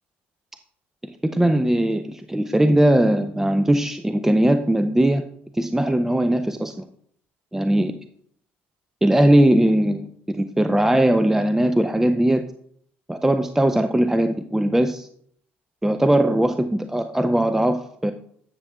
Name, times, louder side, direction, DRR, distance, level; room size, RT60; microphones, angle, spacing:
voice 1, 1.0-5.2 5.6-6.8 7.5-7.9 9.0-12.4 13.1-15.1 15.8-18.1, right 1 dB, 5° right, 8 dB, 0.5 m, -19 dB
9.8 x 6.6 x 2.2 m, 0.62 s
hypercardioid pair, 65°, 6 cm